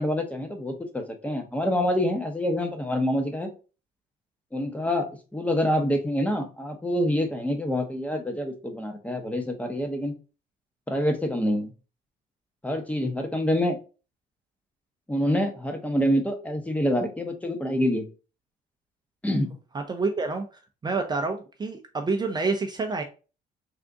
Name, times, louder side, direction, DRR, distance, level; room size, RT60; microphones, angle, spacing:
voice 1, 0.0-3.5 4.5-10.1 10.9-11.7 12.6-13.8 15.1-18.0 19.2-19.5, equal, 10° left, 5 dB, 0.8 m, -26 dB
voice 2, 19.7-20.4 20.8-23.0, right 3 dB, 25° right, 4 dB, 0.5 m, -28 dB
3.5 x 2.5 x 3.7 m, 0.34 s
cardioid pair, 110°, 17 cm